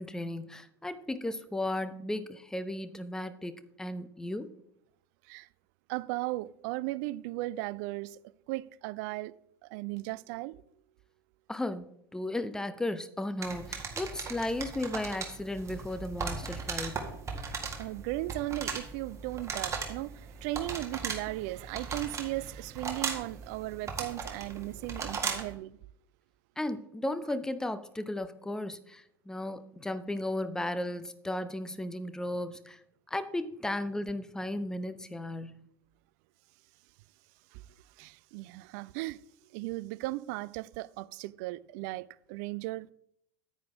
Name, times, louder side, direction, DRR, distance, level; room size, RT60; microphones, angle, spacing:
voice 1, 0.0-4.5 11.5-17.1 26.6-32.8 33.1-35.6, left 1 dB, 5° left, 0.7 m, -35 dB
voice 2, 5.9-8.2 8.5-9.4 9.6-10.6 17.8-25.8 37.5-37.6 38.0-39.2 39.5-42.9, right 19 dB, 45° right, 0.4 m, -36 dB
sound 1, 13.4-25.6, right 5 dB, 25° right, 1.8 m, -38 dB
9.5 x 9.5 x 3.6 m
figure-of-eight pair, 80°, 12 cm